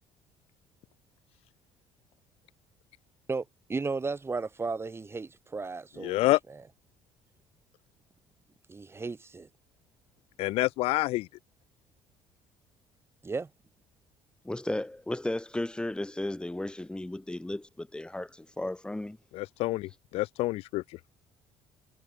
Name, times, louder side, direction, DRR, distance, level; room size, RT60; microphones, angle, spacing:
voice 1, 3.3-6.6 8.7-9.5 13.2-13.5, right 4 dB, 25° right, 3.3 m, -35 dB
voice 2, 6.0-6.4 10.4-11.3 19.3-21.0, left 18 dB, 75° left, 1.1 m, -28 dB
voice 3, 14.4-19.2, left 1 dB, 10° left, 5.0 m, -34 dB
supercardioid pair, 80°, 10 cm